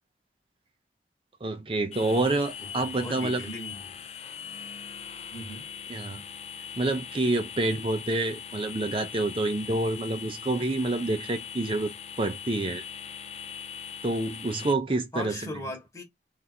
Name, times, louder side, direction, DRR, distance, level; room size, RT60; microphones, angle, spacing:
voice 1, 1.4-3.4 5.9-6.2 6.8-12.8 14.0-15.3, right 2 dB, 30° right, 0.6 m, -28 dB
sound 1, 1.9-14.7, left 8 dB, 35° left, 0.5 m, -41 dB
voice 2, 2.6-4.0 5.3-5.6 15.1-16.0, equal, 15° left, 1.3 m, -38 dB
3.5 x 2.5 x 4.2 m
head